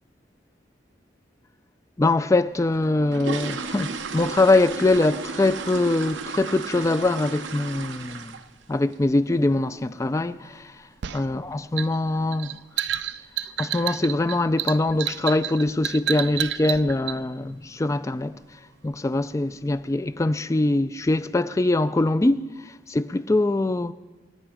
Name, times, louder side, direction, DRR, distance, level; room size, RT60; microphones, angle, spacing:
voice 1, 2.0-8.4 8.7-10.7 11.1-12.6 13.6-18.4 18.8-22.5 22.9-23.9, left 2 dB, 15° left, 0.4 m, -23 dB
sound 1, 2.7-8.7 8.9-9.2 9.6-9.7 10.0-10.2 10.6-10.8 11.0-11.1 11.7-11.8 12.1-12.2 12.7-13.1 13.3-13.4 13.8-14.0 14.4-14.5 14.9-15.0 15.6-15.9 16.2-16.5 16.9-17.0 17.4-17.5 18.3-18.4 18.8-19.3 19.8-19.9, right 4 dB, 85° right, 0.9 m, -34 dB
sound 2, 11.0-17.2, right 11 dB, 65° right, 0.4 m, -30 dB
26.5 x 8.9 x 5.0 m
head